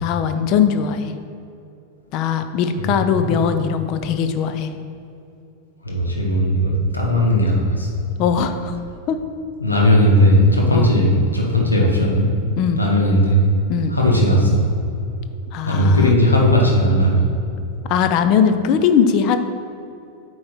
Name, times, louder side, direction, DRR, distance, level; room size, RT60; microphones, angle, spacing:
voice 1, 0.0-1.1 2.1-4.7 8.2-8.8 9.1-9.2 10.7-10.9 12.6-12.8 13.7-14.0 15.5-16.1 17.9-19.4, left 7 dB, 40° left, 9 dB, 0.5 m, -20 dB
voice 2, 2.8-3.4 5.8-7.9 9.6-12.3 12.8-13.4 13.9-14.6 15.6-17.2, equal, 80° left, -1 dB, 1.4 m, -17 dB
8.7 x 4.7 x 4.3 m, 2.6 s
figure-of-eight pair, 90°, 0 cm